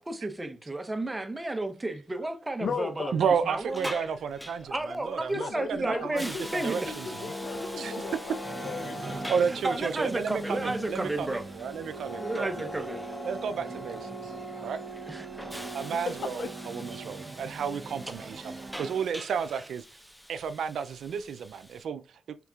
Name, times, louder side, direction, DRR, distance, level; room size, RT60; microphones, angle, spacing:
voice 1, 0.0-4.0 4.7-6.9 9.5-11.4 12.2-13.0 15.1-15.3, right 2 dB, 25° right, 0.9 m, -32 dB
voice 2, 2.6-3.1 5.4-9.8 16.2-17.0, left 5 dB, 75° left, 0.4 m, -38 dB
voice 3, 3.1-7.3 7.8-8.0 9.1-12.7 13.2-14.3 14.6-14.8 15.7-19.8 20.3-22.2, right 6 dB, 85° right, 0.3 m, -32 dB
Hiss, 3.2-21.9, equal, 5° left, 0.6 m, -46 dB
sound 1, 5.8-19.1, right 3 dB, 55° right, 0.7 m, -44 dB
sound 2, 6.2-17.4, equal, 35° left, 1.1 m, -41 dB
5.8 x 3.5 x 2.3 m
cardioid pair, 55°, 0 cm